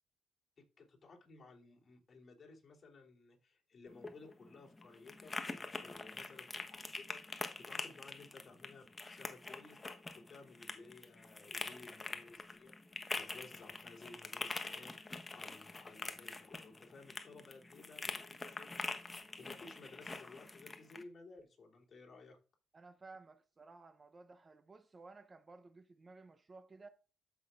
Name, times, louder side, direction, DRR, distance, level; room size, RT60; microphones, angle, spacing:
voice 1, 0.6-12.7 13.2-22.4, left 3 dB, 40° left, 3.3 m, -57 dB
sound 1, 3.9-21.0, left 3 dB, 20° left, 1.1 m, -45 dB
voice 2, 22.7-26.9, right 3 dB, 30° right, 0.7 m, -56 dB
14.0 x 6.0 x 2.5 m
cardioid pair, 90°, 0 cm